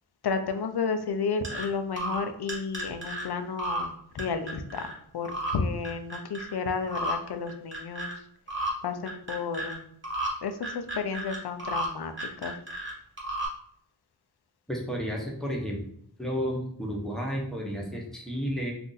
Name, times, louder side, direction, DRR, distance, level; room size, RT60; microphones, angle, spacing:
voice 1, 0.2-4.9 5.1-8.1 8.5-9.8 10.4-12.5, left 5 dB, 70° left, 8 dB, 0.5 m, -32 dB
sound 1, 1.4-1.6 2.0-3.2 3.6-3.9 4.2-4.9 5.2-5.5 5.8-6.5 6.9-7.1 7.5-8.1 8.5-8.7 9.1-9.7 10.0-10.3 10.6-11.9 12.1-12.9 13.2-13.5, right 1 dB, 30° right, 1.2 m, -32 dB
voice 2, 14.7-15.8 16.2-18.7, equal, ahead, -1 dB, 0.8 m, -32 dB
2.6 x 2.5 x 3.9 m, 0.68 s
wide cardioid pair, 75°, 41 cm